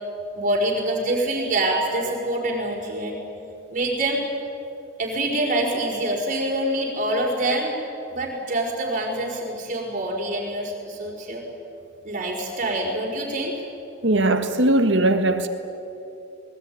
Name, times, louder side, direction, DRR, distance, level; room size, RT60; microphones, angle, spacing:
voice 1, 0.4-3.2 3.7-4.2 5.0-7.7 8.1-11.4 12.0-13.5, right 1 dB, 40° right, 5.2 m, -25 dB
voice 2, 14.0-15.5, right 1 dB, 60° right, 1.8 m, -19 dB
21.5 x 20.5 x 9.7 m
head